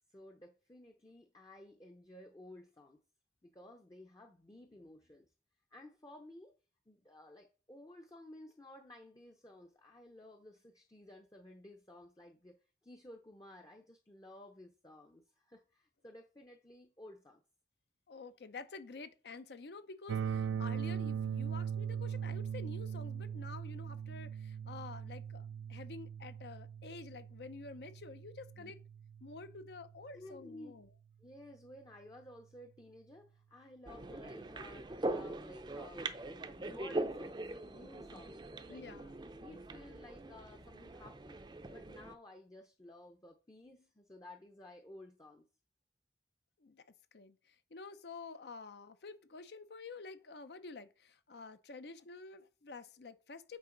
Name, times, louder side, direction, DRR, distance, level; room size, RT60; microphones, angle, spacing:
voice 1, 0.1-3.0 3.4-5.3 5.7-6.5 6.9-17.4 28.6-28.7 30.1-30.7 31.2-37.4 37.7-38.9 39.4-41.4 41.7-45.5, left 1 dB, 20° left, 0.6 m, -55 dB
voice 2, 18.1-28.8 29.2-30.9 38.7-39.2 46.6-46.8 47.1-53.6, left 4 dB, 65° left, 0.6 m, -49 dB
sound 1, 20.1-30.0, right 7 dB, 85° right, 0.3 m, -40 dB
sound 2, 33.9-42.1, right 2 dB, 25° right, 0.5 m, -42 dB
8.7 x 4.4 x 3.8 m
head